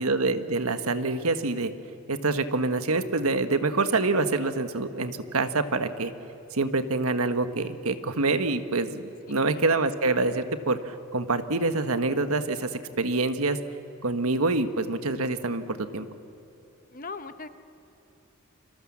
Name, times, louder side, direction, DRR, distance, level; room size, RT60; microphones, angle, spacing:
voice 1, 0.0-1.7 2.1-6.1 6.5-12.7 13.0-13.6 14.0-16.1, right 3 dB, 90° right, 9 dB, 1.4 m, -26 dB
voice 2, 16.9-17.5, left 4 dB, 40° left, 10 dB, 1.0 m, -39 dB
29.5 x 25.5 x 7.3 m, 2.9 s
head